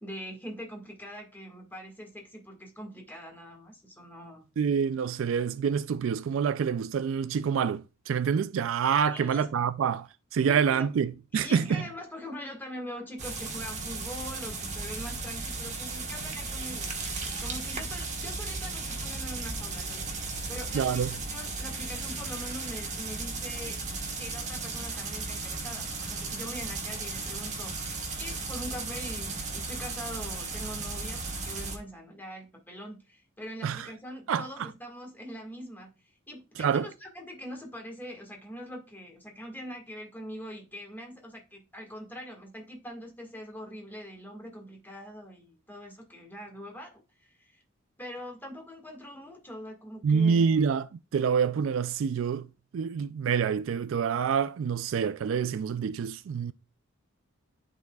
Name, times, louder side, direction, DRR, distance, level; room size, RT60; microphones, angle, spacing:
voice 1, 0.0-4.5 9.1-9.5 10.4-10.9 11.3-17.0 17.4-23.8 24.2-47.6 48.0-50.6, equal, 10° left, 1.7 m, -43 dB
voice 2, 4.6-10.1 10.3-11.8 20.7-21.1 33.6-33.9 34.3-34.7 36.6-36.9 50.0-52.5 52.7-56.5, right 6 dB, 70° right, 0.3 m, -27 dB
sound 1, 13.2-31.8, right 3 dB, 35° right, 1.2 m, -35 dB
12.0 x 4.1 x 2.3 m
head